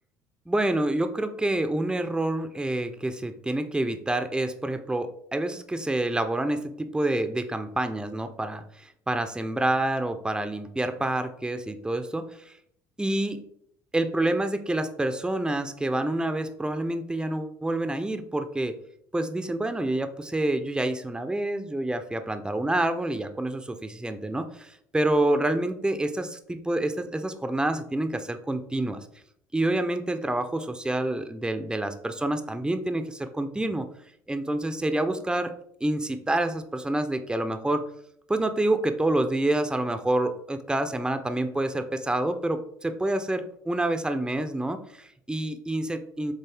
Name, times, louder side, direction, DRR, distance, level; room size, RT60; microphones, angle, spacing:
voice 1, 0.5-12.5 13.0-13.4 13.9-18.7 19.1-29.0 29.5-33.9 34.3-35.5 35.8-37.8 38.3-46.3, right 1 dB, 10° right, 8 dB, 0.8 m, -27 dB
6.9 x 4.0 x 3.6 m, 0.69 s
hypercardioid pair, 60°, 10 cm